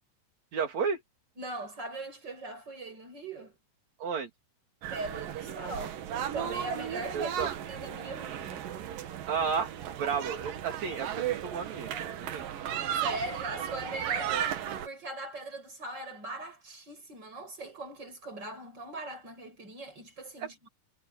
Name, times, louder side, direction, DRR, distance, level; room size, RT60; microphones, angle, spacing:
voice 1, 0.5-1.0 4.0-4.3 7.1-7.5 9.3-9.7 10.0-12.5 14.3-14.4 20.4-20.5, right 6 dB, 55° right, 3.6 m, -32 dB
voice 2, 1.4-3.6 4.9-6.0 6.3-8.7 13.0-14.5 14.8-20.7, right 2 dB, 30° right, 7.7 m, -40 dB
sound 1, 4.8-14.9, right 10 dB, 75° right, 3.2 m, -35 dB
omnidirectional pair, 4.0 m